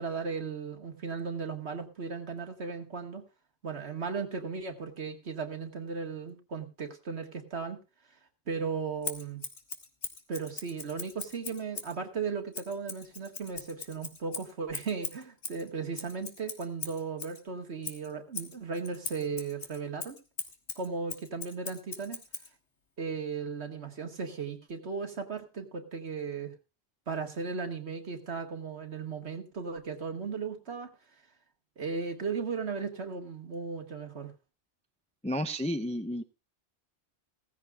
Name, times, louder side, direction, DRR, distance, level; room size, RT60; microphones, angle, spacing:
voice 1, 0.0-3.2 3.6-7.8 8.5-9.4 10.3-20.2 20.8-22.2 23.0-26.5 27.1-30.9 31.8-34.3, right 5 dB, 70° right, 4 dB, 2.0 m, -36 dB
Scissors, 9.0-12.0 12.5-17.4 17.8-22.5, left 4 dB, 80° left, 2.0 m, -40 dB
voice 2, 35.2-36.2, equal, 10° left, 8 dB, 0.4 m, -31 dB
16.5 x 15.0 x 2.4 m, 0.28 s
omnidirectional pair, 1.2 m